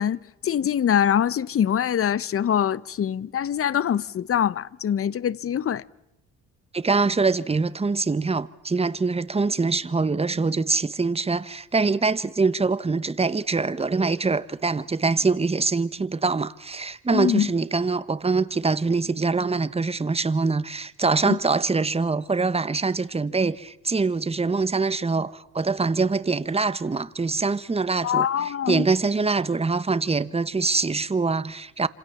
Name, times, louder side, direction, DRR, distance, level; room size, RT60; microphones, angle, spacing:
voice 1, 0.0-5.8 17.1-17.5 21.3-21.4 28.0-28.9, left 9 dB, 50° left, 0.9 m, -24 dB
voice 2, 6.7-28.3 28.7-31.9, right 4 dB, 20° right, 1.2 m, -24 dB
27.5 x 26.5 x 7.2 m
cardioid pair, 90°, 30 cm